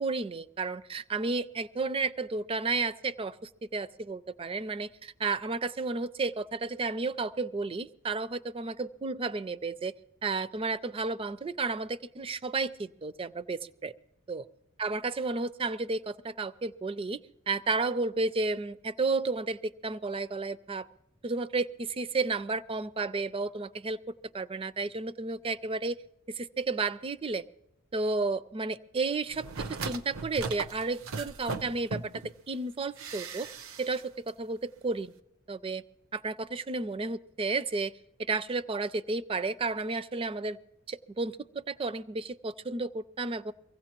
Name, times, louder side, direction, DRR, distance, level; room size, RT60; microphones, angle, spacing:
voice 1, 0.0-9.9 10.2-13.9 14.3-14.5 14.8-20.9 21.2-24.0 24.3-26.0 26.3-27.4 27.9-33.5 33.8-35.1 35.5-35.8 36.1-37.9 38.3-40.6 40.9-43.5, right 3 dB, 25° right, 15 dB, 0.4 m, -32 dB
sound 1, 29.3-32.3 33.0-34.0 34.3-34.4, right 4 dB, 80° right, 0.7 m, -38 dB
23.5 x 16.0 x 3.0 m, 0.85 s
head